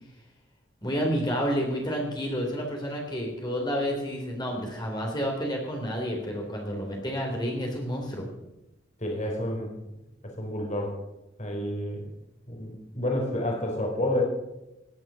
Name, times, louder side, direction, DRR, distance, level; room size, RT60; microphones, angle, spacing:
voice 1, 0.8-8.3, equal, 25° left, 0 dB, 3.3 m, -30 dB
voice 2, 9.0-9.7 10.4-10.9 11.4-12.0 12.5-14.2, left 1 dB, 40° left, 1 dB, 4.2 m, -29 dB
18.0 x 10.5 x 6.2 m, 0.94 s
head